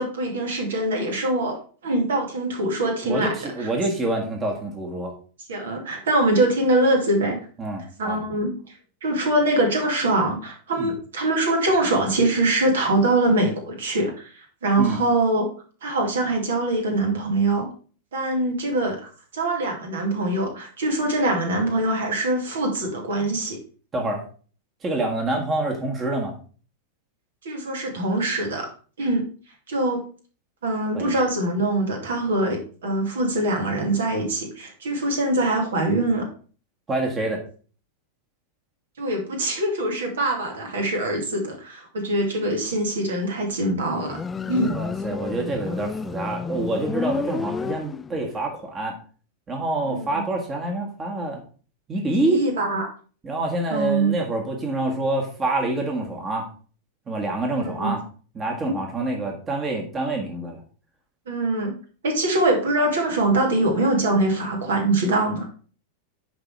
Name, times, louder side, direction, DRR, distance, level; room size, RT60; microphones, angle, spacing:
voice 1, 0.0-3.3 3.6-3.7 5.5-7.4 8.0-8.5 9.0-15.5 15.8-17.7 18.1-23.6 27.4-28.7 29.0-29.2 29.7-30.0 30.6-36.3 39.0-44.2 44.5-44.7 49.8-50.2 52.2-52.9 53.7-54.1 57.6-57.9 58.7-58.8 61.3-61.7 62.0-65.5, right 2 dB, 65° right, 2 dB, 2.4 m, -23 dB
voice 2, 3.0-5.1 7.6-8.2 10.8-10.9 14.8-15.0 23.9-24.2 24.8-26.3 30.9-31.1 36.9-37.4 44.4-49.0 49.5-51.4 51.9-52.4 53.2-56.5 57.1-58.0 58.3-60.6, right 2 dB, 20° right, 1 dB, 1.7 m, -26 dB
Motorcycle, 44.0-48.4, left 5 dB, 15° left, 0.3 m, -30 dB
10.0 x 4.1 x 4.7 m, 0.41 s
figure-of-eight pair, 90°, 0 cm